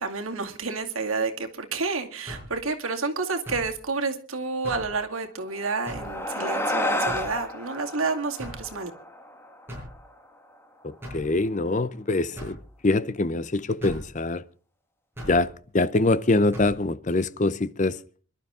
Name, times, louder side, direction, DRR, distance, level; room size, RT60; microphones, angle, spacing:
voice 1, 0.0-8.9, right 4 dB, 85° right, 2.3 m, -30 dB
sound 1, 2.3-2.6 3.5-3.7 4.6-4.9 5.9-6.1 7.1-7.4 8.4-8.7 9.7-10.0 11.0-11.3 12.4-12.6 13.8-14.1 15.2-15.4 16.5-16.8, equal, 10° right, 7.9 m, -38 dB
sound 2, 5.5-10.2, left 1 dB, 10° left, 1.7 m, -31 dB
voice 2, 10.8-12.6 12.8-14.4 15.3-18.0, left 2 dB, 35° left, 0.6 m, -24 dB
26.5 x 12.0 x 3.7 m
head